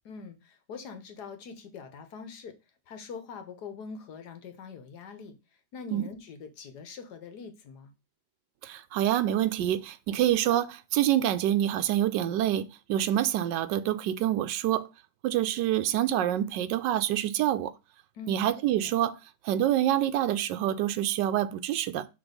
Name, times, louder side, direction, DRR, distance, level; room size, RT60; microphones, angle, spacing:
voice 1, 0.0-2.5 2.9-5.4 5.7-7.9 18.1-18.5, left 5 dB, 70° left, 1.5 m, -43 dB
voice 2, 8.6-14.9 15.2-17.7 18.3-19.2 19.4-22.1, right 12 dB, 85° right, 1.3 m, -26 dB
6.1 x 3.6 x 5.1 m
omnidirectional pair, 1.9 m